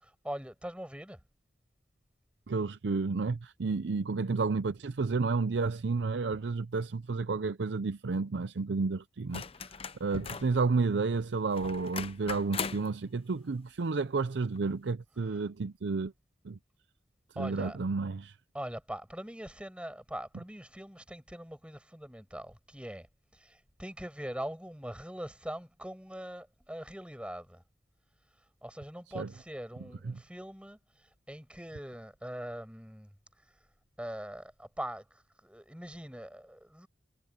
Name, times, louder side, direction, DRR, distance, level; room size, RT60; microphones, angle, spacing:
voice 1, 0.0-1.2 17.4-17.8 18.5-23.1 23.3-27.6 28.6-30.8 31.3-33.1 34.0-36.9, equal, 5° right, 5.5 m, -42 dB
voice 2, 2.5-9.4 10.0-16.1 16.4-16.6 17.4-18.4 29.1-29.3 30.0-30.2, right 4 dB, 80° right, 0.5 m, -31 dB
sound 1, 9.3-10.6 11.6-12.9 14.6-14.7, left 5 dB, 35° left, 0.8 m, -39 dB
head